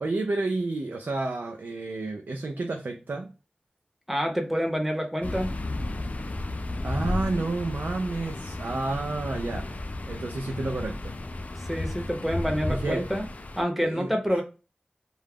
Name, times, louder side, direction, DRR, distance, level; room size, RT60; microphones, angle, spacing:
voice 1, 0.0-3.3 6.8-9.7 10.1-11.1 12.7-13.1 13.8-14.4, right 2 dB, 80° right, 3 dB, 0.4 m, -30 dB
voice 2, 4.1-5.5 11.6-13.2 13.6-14.4, equal, 5° right, 2 dB, 0.7 m, -27 dB
sound 1, 5.2-13.6, left 2 dB, 50° left, 0.3 m, -33 dB
2.3 x 2.0 x 3.3 m, 0.32 s
wide cardioid pair, 75°, 3 cm